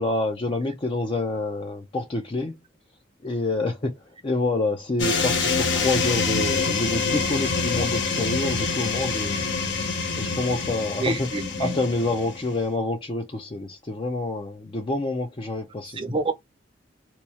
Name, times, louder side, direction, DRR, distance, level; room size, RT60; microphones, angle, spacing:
voice 1, 0.0-2.5 3.2-9.4 10.2-11.3 11.6-16.0, left 2 dB, 30° left, 0.5 m, -27 dB
sound 1, 5.0-12.6, left 4 dB, 65° left, 0.8 m, -26 dB
voice 2, 11.0-11.7 16.0-16.3, right 2 dB, 30° right, 0.6 m, -27 dB
3.0 x 2.3 x 4.1 m
head